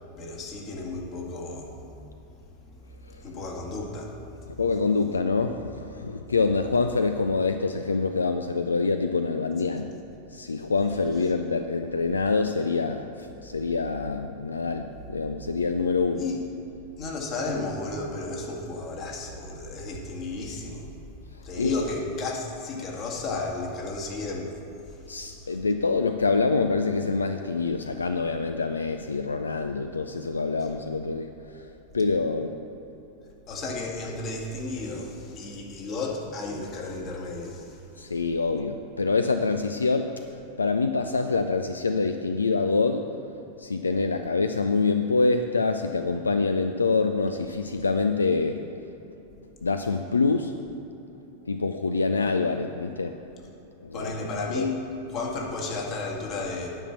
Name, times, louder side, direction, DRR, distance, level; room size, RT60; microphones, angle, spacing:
voice 1, 0.2-1.7 2.7-2.8 3.1-4.5 16.2-16.4 17.0-20.9 21.4-25.2 25.4-25.6 33.5-37.8 53.9-54.8 55.1-56.8, left 3 dB, 35° left, -1 dB, 1.8 m, -33 dB
voice 2, 4.6-9.9 10.3-16.2 21.6-21.7 25.1-32.6 38.0-40.1 40.6-43.2 43.6-48.6 49.6-50.5 51.5-53.1 53.8-54.7, left 4 dB, 75° left, 7 dB, 0.4 m, -26 dB
10.0 x 5.5 x 7.0 m, 2.9 s
figure-of-eight pair, 90°, 0 cm